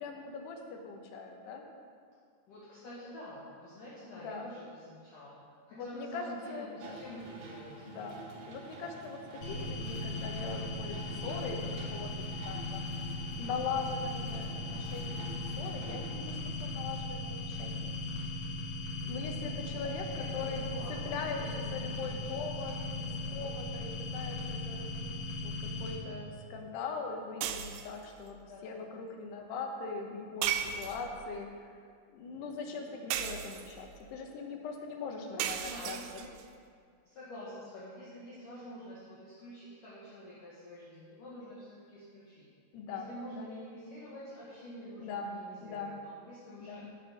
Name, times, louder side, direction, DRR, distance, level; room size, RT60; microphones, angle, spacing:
voice 1, 0.0-1.6 4.1-4.5 5.7-7.4 7.8-8.2 8.5-12.9 13.4-17.8 19.1-20.6 20.9-28.4 28.6-31.7 32.1-36.0 42.7-43.6 45.0-45.3 45.6-45.9 46.6-46.9, left 4 dB, 75° left, 2 dB, 3.1 m, -41 dB
voice 2, 2.5-5.3 5.7-8.2 14.1-14.4 19.0-19.7 20.1-22.5 22.8-23.1 28.5-28.9 32.6-33.3 35.1-36.3 37.0-42.5 42.9-46.8, equal, 55° left, -9 dB, 3.0 m, -48 dB
sound 1, 6.8-16.1, right 2 dB, 55° right, 2.2 m, -48 dB
sound 2, 9.4-26.0, left 2 dB, 35° left, 2.2 m, -38 dB
sound 3, 27.4-28.0 30.4-31.3 33.1-33.9 35.4-36.4, right 10 dB, 80° right, 2.7 m, -35 dB
15.5 x 7.1 x 5.3 m, 2.1 s
omnidirectional pair, 5.0 m